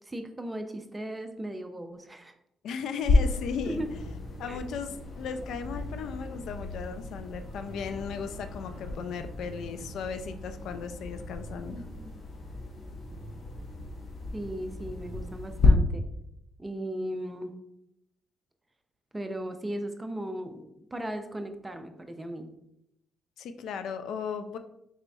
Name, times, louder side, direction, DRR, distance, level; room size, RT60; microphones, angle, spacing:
voice 1, 0.1-2.3 3.7-3.9 4.4-4.6 11.7-12.2 14.3-16.0 16.6-17.5 19.1-22.5, right 1 dB, 15° right, 6 dB, 0.5 m, -37 dB
voice 2, 2.6-3.8 4.4-11.8 23.4-24.6, left 6 dB, 75° left, 9 dB, 0.3 m, -36 dB
sound 1, 3.0-15.7, left 3 dB, 55° left, 0.8 m, -33 dB
sound 2, 3.6-15.5, right 1 dB, 90° right, 0.5 m, -47 dB
4.2 x 3.9 x 2.3 m, 0.78 s
cardioid pair, 90°, 0 cm